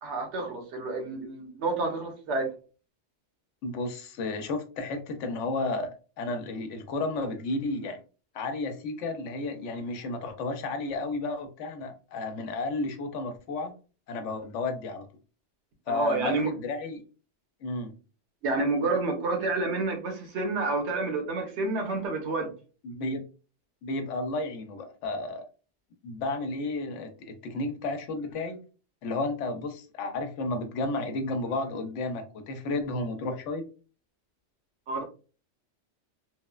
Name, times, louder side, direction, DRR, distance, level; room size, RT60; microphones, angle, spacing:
voice 1, 0.0-2.5 15.9-16.5 18.4-22.5 34.9-35.0, right 3 dB, 75° right, 3 dB, 1.1 m, -29 dB
voice 2, 3.6-8.0 8.3-13.7 14.1-15.1 15.9-17.0 17.6-18.0 22.8-23.3 23.8-25.4 26.0-28.6 29.0-33.7, left 2 dB, 90° left, 6 dB, 1.0 m, -32 dB
3.0 x 2.0 x 2.2 m, 0.35 s
omnidirectional pair, 1.2 m